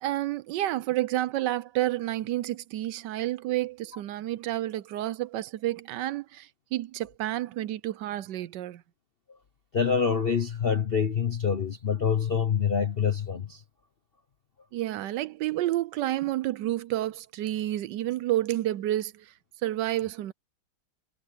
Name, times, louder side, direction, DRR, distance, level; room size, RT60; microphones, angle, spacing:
voice 1, 0.0-8.8 14.7-19.3 19.6-20.3, right 14 dB, 70° right, 1.1 m, -30 dB
voice 2, 9.7-13.6, left 7 dB, 60° left, 0.6 m, -26 dB
omnidirectional pair, 2.3 m